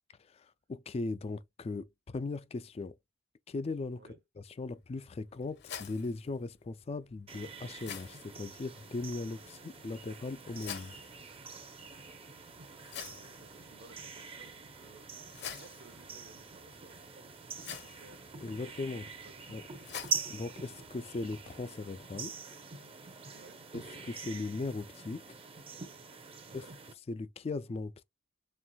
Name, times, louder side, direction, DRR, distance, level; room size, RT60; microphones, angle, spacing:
voice 1, 0.3-2.9 3.5-4.0 4.4-11.0 18.4-19.1 19.5-19.6 20.3-22.3 23.7-25.2 26.5-26.6 27.1-28.0, left 3 dB, 30° left, 0.3 m, -38 dB
sound 1, 4.6-21.6, left 8 dB, 60° left, 0.8 m, -50 dB
sound 2, 7.3-26.9, right 6 dB, 30° right, 0.7 m, -45 dB
voice 2, 12.9-19.5 23.3-23.7 26.5-26.8, right 3 dB, 55° right, 1.0 m, -59 dB
4.4 x 3.4 x 2.2 m
head